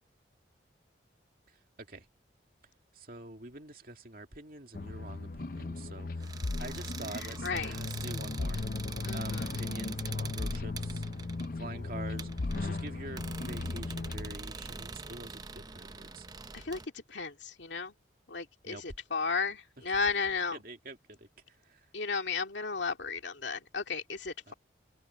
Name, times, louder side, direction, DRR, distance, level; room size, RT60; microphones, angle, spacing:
voice 1, 3.0-8.6 9.1-11.0 11.6-12.3 12.5-16.3 18.7-18.8 20.5-21.3 21.7-21.8 24.5-24.6, right 2 dB, 50° right, 2.5 m, -46 dB
modern-loop, 4.7-14.4, left 3 dB, 45° left, 0.6 m, -36 dB
sound 1, 6.2-16.9, right 4 dB, 20° right, 0.6 m, -44 dB
voice 2, 7.1-7.7 9.0-9.5 16.5-17.9 18.3-20.6 21.9-24.5, left 5 dB, 70° left, 2.2 m, -34 dB
head